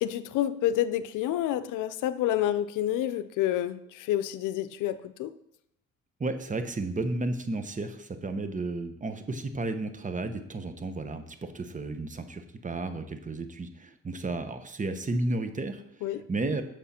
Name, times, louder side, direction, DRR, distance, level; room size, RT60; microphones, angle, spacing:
voice 1, 0.0-5.3 16.0-16.2, left 12 dB, 90° left, 12 dB, 0.6 m, -28 dB
voice 2, 6.2-16.6, right 2 dB, 25° right, 8 dB, 0.9 m, -33 dB
8.3 x 6.7 x 4.3 m, 0.75 s
cardioid pair, 90°, 30 cm